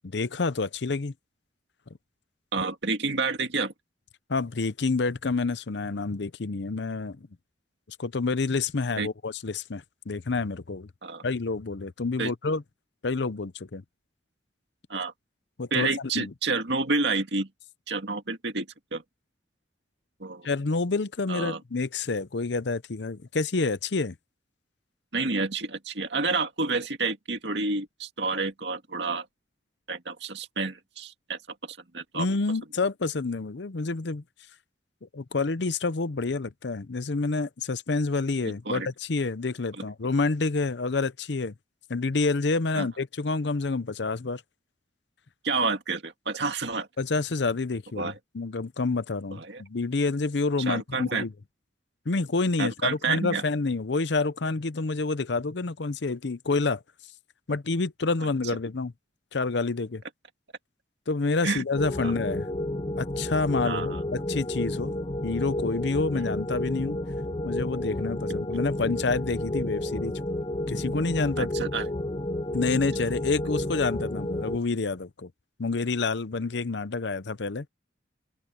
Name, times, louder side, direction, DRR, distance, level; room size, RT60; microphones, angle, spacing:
voice 1, 0.1-1.1 4.3-7.3 8.0-10.9 11.2-12.6 13.0-13.8 15.6-15.9 16.1-16.3 20.4-24.1 32.1-34.2 35.1-41.5 41.9-44.4 47.0-51.3 52.1-56.8 57.5-58.9 59.3-60.0 61.1-62.5 63.0-64.9 65.2-67.0 67.4-70.1 70.7-71.5 72.5-75.3 75.6-77.7, left 3 dB, 65° left, 0.7 m, -28 dB
voice 2, 2.5-3.7 9.0-9.1 11.0-11.2 12.2-12.3 14.9-15.1 15.7-17.5 17.9-18.7 18.9-19.0 20.2-20.5 21.3-21.6 25.1-29.3 29.9-32.3 38.4-38.9 39.8-39.9 42.7-42.9 45.4-46.9 48.0-48.1 49.3-49.6 50.7-51.2 52.6-53.4 61.4-61.6 62.0-62.1 63.6-64.0 71.4-71.9, right 3 dB, 65° right, 2.1 m, -29 dB
sound 1, 61.8-74.6, left 1 dB, 30° left, 0.8 m, -31 dB
open air
head